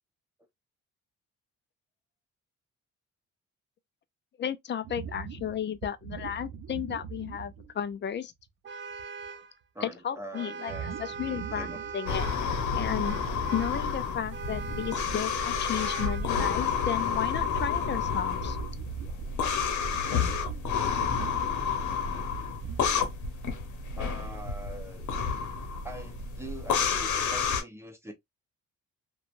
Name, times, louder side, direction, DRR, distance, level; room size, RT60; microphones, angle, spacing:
voice 1, 4.4-8.3 9.8-11.7 11.9-12.3 12.7-13.2 13.5-18.6, left 9 dB, 40° left, 0.4 m, -33 dB
sound 1, 4.8-7.9 8.4-8.5 8.9-9.2 10.7-12.1 12.3-14.1 14.4-23.0, right 7 dB, 80° right, 0.7 m, -42 dB
Vehicle horn car horn honking, 8.6-9.5 10.3-12.5 13.0-13.9 14.3-15.2 15.8-16.4, right 6 dB, 40° right, 0.4 m, -41 dB
voice 2, 9.7-11.8 12.1-12.2 24.0-25.1 25.8-28.1, right 1 dB, 10° right, 0.8 m, -43 dB
sound 2, 12.1-27.6, left 6 dB, 75° left, 0.8 m, -30 dB
2.9 x 2.2 x 2.4 m
cardioid pair, 90°, 30 cm